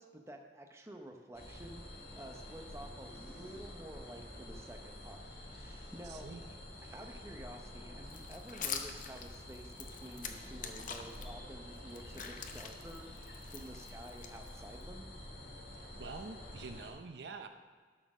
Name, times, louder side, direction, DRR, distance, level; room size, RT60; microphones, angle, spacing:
voice 1, 0.0-6.3 6.8-13.1 13.5-15.1, right 1 dB, 15° right, 3 dB, 0.7 m, -50 dB
sound 1, 1.3-16.9, left 1 dB, 65° left, 1.8 m, -49 dB
voice 2, 6.0-6.5 15.7-17.5, right 4 dB, 80° right, 7 dB, 0.6 m, -47 dB
sound 2, 8.1-11.3 11.7-14.8, left 7 dB, 45° left, 0.7 m, -44 dB
12.0 x 4.4 x 6.1 m, 1.5 s
head